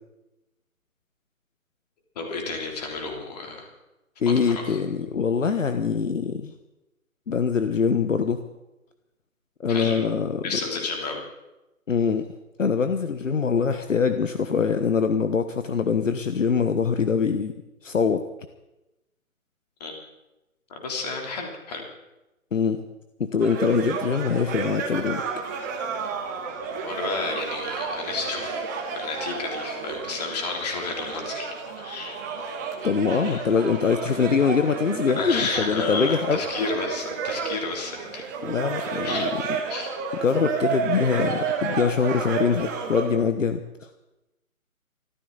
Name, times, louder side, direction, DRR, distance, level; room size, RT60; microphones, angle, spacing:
voice 1, 2.1-3.7 4.3-4.8 9.7-10.0 10.4-11.2 19.8-19.9 20.8-21.9 26.8-28.6 28.9-31.5 31.7-32.2 33.2-33.4 35.2-38.3 39.0-39.3 39.7-39.9, left 4 dB, 30° left, 1 dB, 3.3 m, -31 dB
voice 2, 4.2-6.5 7.3-8.4 9.6-10.4 11.9-12.3 12.6-17.5 17.8-18.2 22.5-22.8 23.2-25.2 32.8-36.4 38.4-39.3 40.2-43.9, left 5 dB, 60° left, 9 dB, 1.2 m, -23 dB
sound 1, 23.4-43.1, right 5 dB, 15° right, 1.2 m, -31 dB
25.0 x 14.0 x 4.0 m, 0.97 s
figure-of-eight pair, 155°, 42 cm